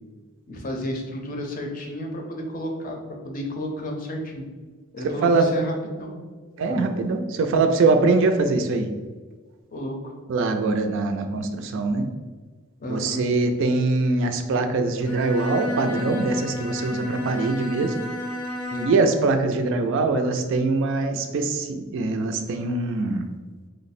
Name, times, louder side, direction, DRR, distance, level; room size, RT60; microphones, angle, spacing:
voice 1, 0.5-4.5 4.9-6.2 6.7-6.8 9.7-10.1 12.8-13.2 18.7-18.9, equal, 40° left, 2 dB, 0.5 m, -32 dB
voice 2, 6.6-8.9 10.3-12.1 12.9-17.9 18.8-23.3, right 3 dB, 60° right, 6 dB, 0.3 m, -23 dB
Bowed string instrument, 15.0-19.2, equal, 85° left, 0.6 m, -31 dB
3.1 x 2.0 x 4.1 m, 1.4 s
head